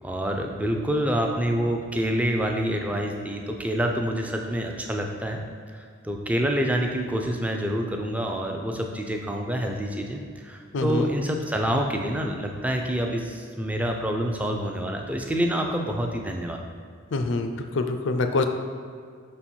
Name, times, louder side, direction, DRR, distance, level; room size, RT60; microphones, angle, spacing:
voice 1, 0.0-5.4 5.7-16.6, equal, 5° right, 2 dB, 0.4 m, -27 dB
voice 2, 10.7-11.1 17.1-18.5, left 3 dB, 60° left, 7 dB, 0.4 m, -25 dB
5.3 x 4.2 x 4.4 m, 2.2 s
head